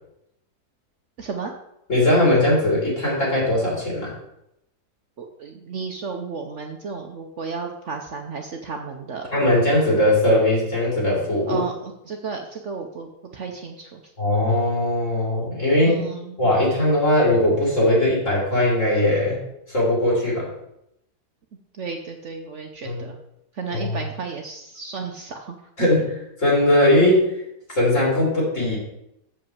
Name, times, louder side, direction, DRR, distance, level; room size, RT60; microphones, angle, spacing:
voice 1, 1.2-1.5 5.2-9.3 11.5-14.0 15.8-16.4 21.8-23.1 23.5-25.9, right 5 dB, 55° right, 3 dB, 1.0 m, -33 dB
voice 2, 1.9-4.1 9.3-11.6 14.2-16.0 16.4-19.4 19.7-20.5 22.8-23.0 23.7-23.9 25.8-26.1 26.4-27.3 27.7-28.8, left 1 dB, 50° left, -5 dB, 4.0 m, -19 dB
7.2 x 5.4 x 7.2 m, 0.82 s
omnidirectional pair, 1.7 m